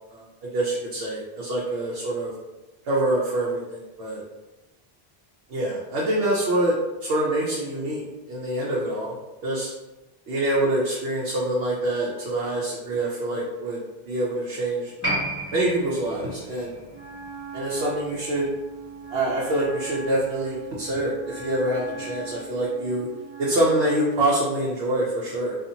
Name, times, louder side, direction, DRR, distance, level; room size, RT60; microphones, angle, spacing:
voice 1, 0.1-2.3 2.9-4.2 5.5-6.7 7.0-8.0 8.3-9.1 9.4-9.7 10.3-13.8 14.0-14.9 15.5-16.8 17.5-18.5 19.1-23.1 23.4-25.6, right 1 dB, 90° right, -5 dB, 0.8 m, -25 dB
Piano, 15.0-22.0 22.2-22.3, right 1 dB, 15° left, 1.4 m, -35 dB
Wind instrument woodwind instrument, 16.9-24.1, right 4 dB, 25° right, 1.1 m, -40 dB
2.7 x 2.4 x 2.5 m, 1.1 s
omnidirectional pair, 1.1 m